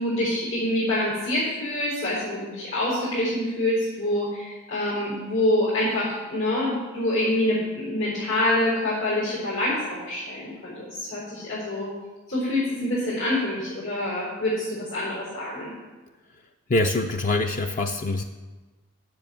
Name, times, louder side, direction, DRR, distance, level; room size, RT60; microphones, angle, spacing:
voice 1, 0.0-11.9 12.3-15.7, left 1 dB, 85° left, -8 dB, 4.3 m, -26 dB
voice 2, 16.7-18.2, left 2 dB, 40° left, 5 dB, 0.4 m, -24 dB
7.8 x 7.2 x 8.5 m, 1.2 s
head